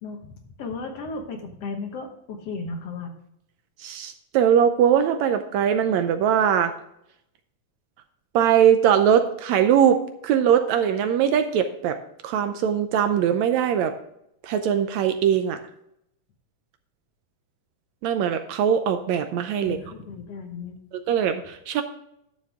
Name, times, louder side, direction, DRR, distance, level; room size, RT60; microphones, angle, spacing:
voice 1, 0.0-3.1 19.6-20.8, left 4 dB, 60° left, 4 dB, 1.9 m, -35 dB
voice 2, 3.8-6.7 8.3-12.0 12.2-13.9 14.4-15.6 18.0-19.8 21.1-21.8, right 9 dB, 75° right, 8 dB, 1.7 m, -21 dB
11.5 x 7.0 x 3.5 m, 0.78 s
omnidirectional pair, 3.6 m